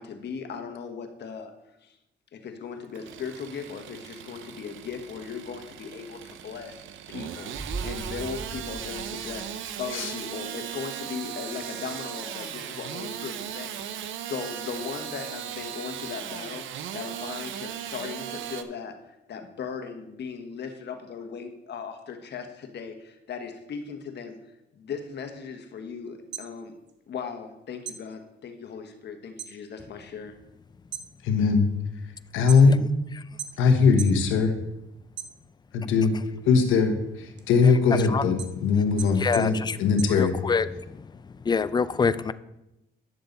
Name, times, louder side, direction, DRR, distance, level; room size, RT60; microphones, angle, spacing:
voice 1, 0.0-1.5 1.8-1.9 2.3-6.8 7.1-7.5 7.8-9.5 9.8-19.0 19.3-24.4 24.7-26.8 27.1-30.3, left 6 dB, 60° left, 6 dB, 1.3 m, -38 dB
Engine starting / Sawing, 2.8-18.6, right 10 dB, 80° right, 0.7 m, -37 dB
sound 1, 7.5-10.2 10.5-10.6, right 3 dB, 10° right, 2.1 m, -39 dB
sound 2, 26.1-27.5 27.8-29.6 29.9-30.4 30.8-33.0 33.4-34.2 34.6-35.8 36.3-40.8, right 8 dB, 60° right, 1.1 m, -40 dB
voice 2, 31.2-31.7 32.3-32.8 33.6-34.5 35.7-36.2 36.5-40.3, left 5 dB, 90° left, 7 dB, 1.1 m, -21 dB
voice 3, 39.2-39.8 40.1-41.1 41.4-42.3, left 5 dB, 20° left, 15 dB, 0.4 m, -26 dB
10.5 x 6.9 x 4.0 m, 0.89 s
cardioid pair, 90°, 20 cm